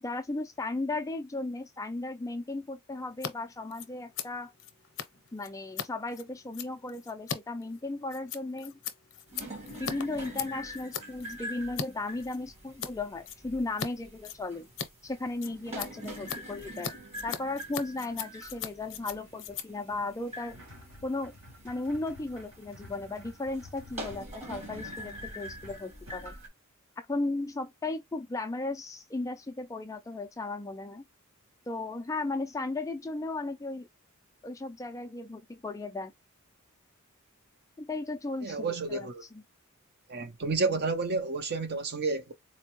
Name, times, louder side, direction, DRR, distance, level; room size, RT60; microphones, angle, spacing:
voice 1, 0.0-4.5 5.3-8.8 9.8-14.7 15.0-16.9 17.2-20.6 21.0-21.3 21.6-26.3 27.1-31.0 31.7-33.9 34.4-36.1 37.8-39.4, left 2 dB, 15° left, 0.3 m, -35 dB
Scissors, 3.1-3.3 3.6-11.9 12.2-12.9 13.2-13.9 14.2-20.9, left 7 dB, 60° left, 0.7 m, -40 dB
sound 1, 9.3-26.5, equal, 30° right, 1.3 m, -45 dB
sound 2, 20.5-26.1, left 1 dB, 80° right, 2.2 m, -52 dB
voice 2, 38.4-39.2 40.1-42.3, right 3 dB, 50° right, 0.7 m, -30 dB
4.2 x 2.1 x 3.0 m
head